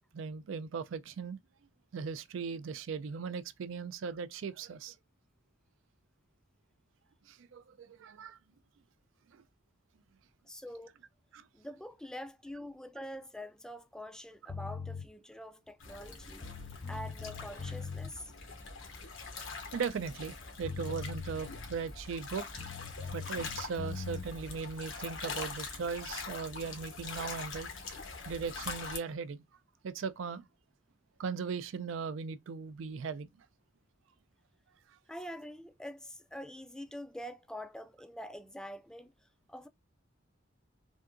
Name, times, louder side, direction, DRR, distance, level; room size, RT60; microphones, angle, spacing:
voice 1, 0.1-1.4 1.9-5.0 7.3-8.4 9.3-9.4 11.3-11.4 19.7-22.4 23.1-27.7 28.3-29.4 29.8-30.5 31.2-33.5, right 5 dB, 70° right, 0.4 m, -38 dB
voice 2, 10.5-10.9 11.5-16.5 16.8-18.3 35.1-39.7, equal, 5° left, 0.3 m, -45 dB
sound 1, 14.5-15.1 16.1-16.2 16.4-18.1 20.3-20.4 20.6-21.8 22.6-24.3, left 5 dB, 40° left, 0.7 m, -41 dB
sound 2, 15.8-29.0, left 4 dB, 85° left, 1.0 m, -43 dB
3.5 x 2.7 x 2.4 m
head